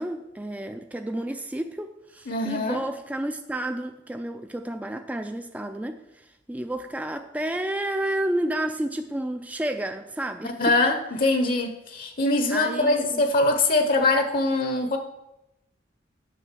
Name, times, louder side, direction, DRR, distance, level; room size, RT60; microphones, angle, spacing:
voice 1, 0.0-10.8 12.5-13.2, right 1 dB, 10° right, 0.3 m, -31 dB
voice 2, 2.3-2.8 10.4-15.0, left 2 dB, 50° left, 0.8 m, -23 dB
7.5 x 6.2 x 6.6 m
head